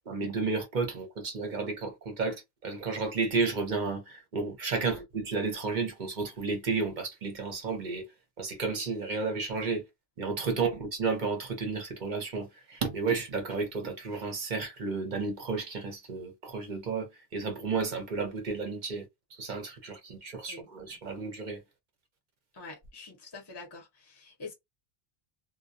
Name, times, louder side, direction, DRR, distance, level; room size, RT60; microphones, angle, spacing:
voice 1, 0.0-8.1 8.4-9.9 10.2-21.6, right 4 dB, 45° right, 0.8 m, -32 dB
voice 2, 22.5-24.5, left 3 dB, 25° left, 0.8 m, -46 dB
2.2 x 2.2 x 2.6 m
omnidirectional pair, 1.2 m